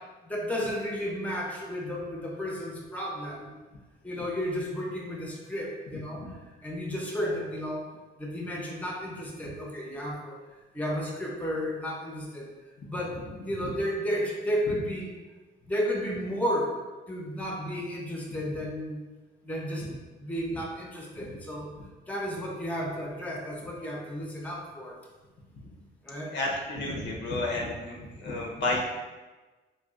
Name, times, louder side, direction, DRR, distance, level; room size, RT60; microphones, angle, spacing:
voice 1, 0.2-3.5 4.0-6.2 6.6-7.8 8.2-12.5 12.9-15.1 15.7-16.7 17.1-19.0 19.4-19.9 20.2-21.7 22.1-24.9 26.0-26.3, equal, 10° left, -2 dB, 0.7 m, -33 dB
voice 2, 26.3-28.8, left 2 dB, 70° left, -1 dB, 0.8 m, -32 dB
4.0 x 2.3 x 2.4 m, 1.2 s
cardioid pair, 90°, 20 cm